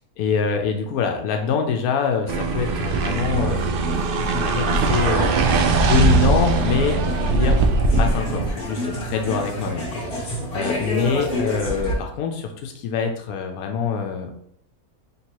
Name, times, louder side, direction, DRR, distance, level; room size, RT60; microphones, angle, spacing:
voice 1, 0.2-3.7 4.3-5.3 5.8-7.6 8.0-14.4, left 6 dB, 90° left, 4 dB, 1.1 m, -25 dB
sound 1, 2.3-12.0, equal, 45° left, 1.3 m, -30 dB
sound 2, 2.3-8.6, right 3 dB, 80° right, 0.5 m, -20 dB
3.2 x 2.9 x 4.5 m, 0.69 s
omnidirectional pair, 1.5 m